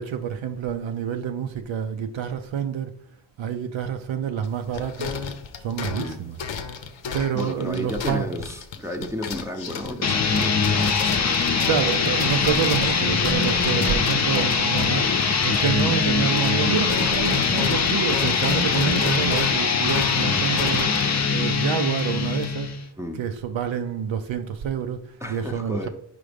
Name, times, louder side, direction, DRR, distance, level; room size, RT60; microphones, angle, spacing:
voice 1, 0.0-2.9 3.4-5.1 5.6-6.4 7.1-8.3 11.6-15.0 15.4-22.7 23.1-25.9, right 8 dB, 90° right, 0.6 m, -28 dB
sound 1, 4.4-16.1 16.3-22.5, left 6 dB, 85° left, 0.8 m, -34 dB
voice 2, 7.3-11.7 14.3-14.6 14.9-15.2 23.0-23.2 25.2-25.9, left 1 dB, 5° right, 0.6 m, -33 dB
sound 2, 10.0-22.9, left 5 dB, 40° left, 0.6 m, -22 dB
5.1 x 3.8 x 5.1 m
wide cardioid pair, 95°, 45 cm